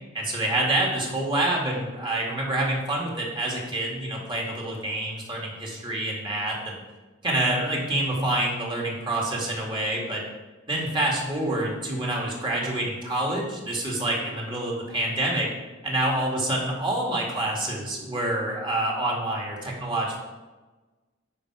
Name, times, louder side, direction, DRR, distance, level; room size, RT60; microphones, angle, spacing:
voice 1, 0.1-6.8 7.2-10.2 10.7-15.5 15.8-20.2, right 1 dB, 25° right, -2 dB, 2.2 m, -27 dB
10.5 x 5.3 x 4.9 m, 1.2 s
head